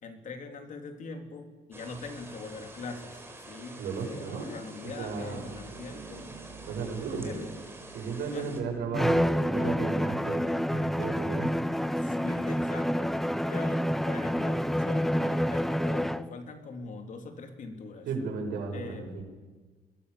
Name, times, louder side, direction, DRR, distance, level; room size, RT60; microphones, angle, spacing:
voice 1, 0.0-6.3 7.1-7.6 8.3-8.5 12.0-18.1 18.7-19.1, left 4 dB, 50° left, 5 dB, 3.6 m, -42 dB
sound 1, 1.7-8.6, right 2 dB, 15° right, 4.7 m, -48 dB
voice 2, 3.8-4.5 4.8-5.5 6.7-7.4 7.9-10.4 10.7-11.5 18.1-19.2, right 5 dB, 75° right, 2 dB, 7.2 m, -34 dB
sound 2, 4.8-13.8 14.1-14.3 16.3-16.4, right 5 dB, 45° right, 7.5 m, -52 dB
Bowed string instrument, 8.9-16.3, equal, ahead, 0.7 m, -28 dB
28.5 x 21.0 x 7.1 m, 1.4 s
cardioid pair, 110°, 17 cm